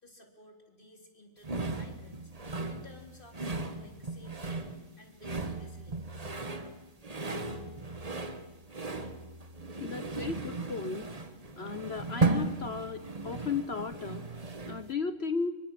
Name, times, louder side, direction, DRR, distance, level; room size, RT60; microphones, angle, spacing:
voice 1, 0.0-2.2 2.7-6.3, left 1 dB, 20° left, 3 dB, 3.6 m, -55 dB
sound 1, 1.4-14.9, right 3 dB, 20° right, 1.1 m, -36 dB
voice 2, 9.8-11.1 11.6-14.2 14.6-15.6, left 5 dB, 55° left, 11 dB, 0.7 m, -35 dB
24.5 x 24.0 x 7.6 m, 1.2 s
omnidirectional pair, 2.4 m